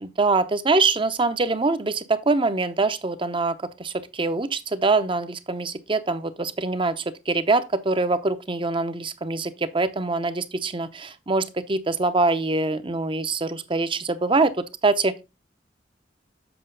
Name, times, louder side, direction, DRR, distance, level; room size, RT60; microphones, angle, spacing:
voice 1, 0.0-14.5 14.8-15.2, right 3 dB, 30° right, 0.7 m, -24 dB
7.9 x 5.7 x 3.8 m
head